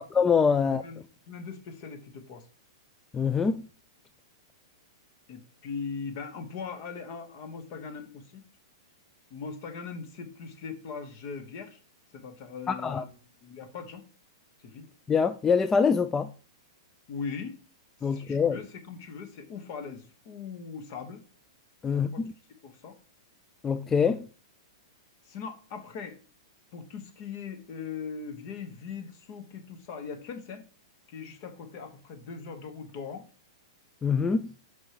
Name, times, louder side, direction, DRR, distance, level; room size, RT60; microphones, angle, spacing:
voice 1, 0.0-0.8 3.1-3.6 12.7-13.0 15.1-16.3 18.0-18.6 21.8-22.3 23.6-24.3 34.0-34.5, left 6 dB, 15° left, 0.3 m, -24 dB
voice 2, 0.6-2.5 5.3-8.4 9.3-11.8 12.1-14.0 14.6-14.9 17.1-17.6 18.0-21.2 21.9-22.2 22.6-22.9 25.2-26.2 26.7-30.6 31.1-33.3, left 5 dB, 50° left, 1.4 m, -40 dB
6.1 x 5.5 x 3.1 m
hypercardioid pair, 115°, 2 cm